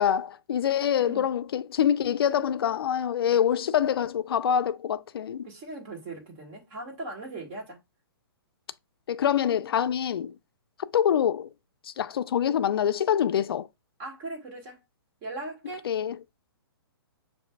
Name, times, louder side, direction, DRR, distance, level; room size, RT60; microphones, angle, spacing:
voice 1, 0.0-5.5 9.1-10.3 10.9-11.5 11.8-13.7 15.9-16.2, left 9 dB, 70° left, 0.4 m, -25 dB
voice 2, 5.4-7.8 14.0-14.8 15.2-15.9, right 2 dB, 35° right, 1.8 m, -39 dB
7.3 x 2.6 x 2.2 m
hypercardioid pair, 140°, 13 cm